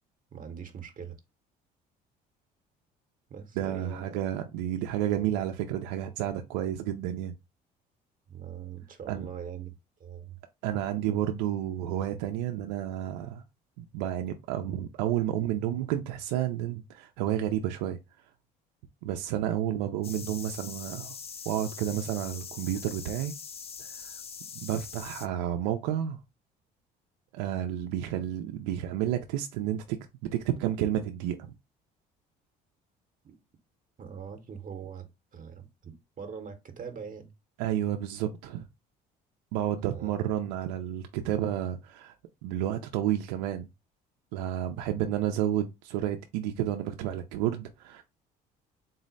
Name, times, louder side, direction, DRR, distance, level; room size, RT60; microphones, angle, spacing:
voice 1, 0.3-1.2 3.3-4.2 4.8-4.9 5.1-5.3 8.3-9.7 10.0-10.4 33.2-33.4 34.0-37.3 39.8-40.2, right 7 dB, 40° right, 0.8 m, -42 dB
voice 2, 3.6-7.3 9.1-9.3 10.6-13.4 13.8-18.0 19.0-21.2 21.5-23.3 23.8-24.2 24.6-26.2 27.3-31.4 37.6-38.7 39.5-42.1 42.4-43.7 44.3-48.0, right 11 dB, 85° right, 0.4 m, -31 dB
sound 1, 20.0-25.3, left 6 dB, 30° left, 0.4 m, -42 dB
3.9 x 2.0 x 3.9 m
hypercardioid pair, 65°, 20 cm